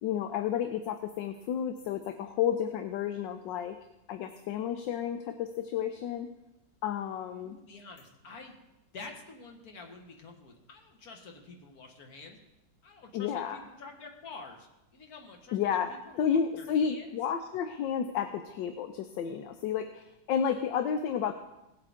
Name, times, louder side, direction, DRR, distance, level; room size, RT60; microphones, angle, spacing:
voice 1, 0.0-3.8 4.1-6.3 6.8-7.6 13.1-13.6 15.5-21.3, left 8 dB, 85° left, 8 dB, 1.4 m, -31 dB
voice 2, 7.4-8.5 8.9-12.4 12.8-17.2, left 3 dB, 55° left, 3 dB, 1.8 m, -48 dB
18.0 x 7.8 x 3.5 m, 0.93 s
omnidirectional pair, 1.9 m